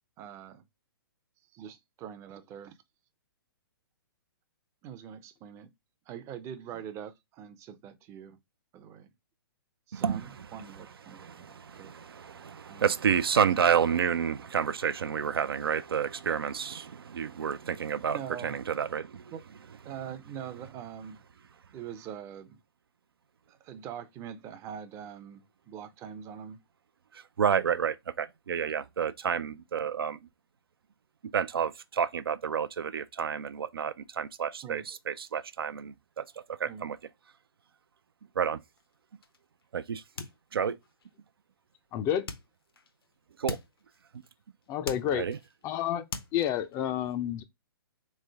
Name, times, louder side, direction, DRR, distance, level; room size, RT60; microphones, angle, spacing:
voice 1, 0.2-0.6 1.5-2.7 4.8-5.7 6.1-8.4 8.7-9.1 9.9-11.9 12.7-12.9 18.1-18.6 19.3-19.4 19.8-21.2 21.7-22.6 23.5-26.6 34.6-34.9 36.6-36.9, right 9 dB, 25° right, 0.5 m, -43 dB
voice 2, 11.1-19.3 27.1-30.2 31.3-37.0 38.4-38.6 39.7-40.0 40.5-40.8 43.4-43.6 45.1-45.4, right 7 dB, 75° right, 0.4 m, -30 dB
sound 1, 38.7-39.7 39.9-41.1 42.3-43.1 43.5-44.4 44.6-45.7 46.1-46.8, left 4 dB, 75° left, 0.8 m, -42 dB
voice 3, 41.9-42.3 44.7-45.3 45.6-46.1 46.3-47.4, left 10 dB, 25° left, 0.4 m, -29 dB
3.6 x 3.3 x 3.3 m
hypercardioid pair, 125°, 12 cm